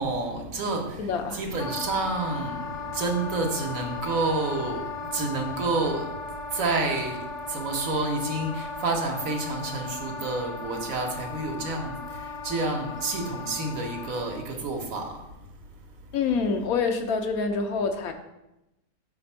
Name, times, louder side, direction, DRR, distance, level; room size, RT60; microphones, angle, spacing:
voice 1, 0.0-6.2 6.5-15.3, right 3 dB, 70° right, 2 dB, 1.3 m, -29 dB
voice 2, 1.0-1.4 16.1-18.1, left 5 dB, 80° left, 5 dB, 1.1 m, -26 dB
Wind instrument woodwind instrument, 1.6-14.5, left 4 dB, 40° left, 0.7 m, -37 dB
5.1 x 3.4 x 5.4 m, 0.90 s
omnidirectional pair, 1.5 m